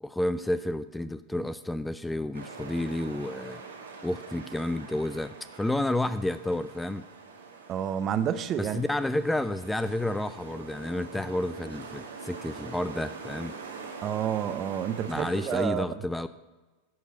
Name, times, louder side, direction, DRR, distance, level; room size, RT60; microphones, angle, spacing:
voice 1, 0.0-3.6 4.0-7.1 8.6-13.5 15.1-16.3, left 1 dB, 5° left, 13 dB, 0.4 m, -30 dB
sound 1, 2.3-15.6, right 4 dB, 85° right, 1.7 m, -44 dB
voice 2, 7.7-8.8 14.0-15.8, right 9 dB, 35° right, 12 dB, 0.7 m, -29 dB
12.0 x 4.7 x 8.3 m, 1.2 s
hypercardioid pair, 95°, 0 cm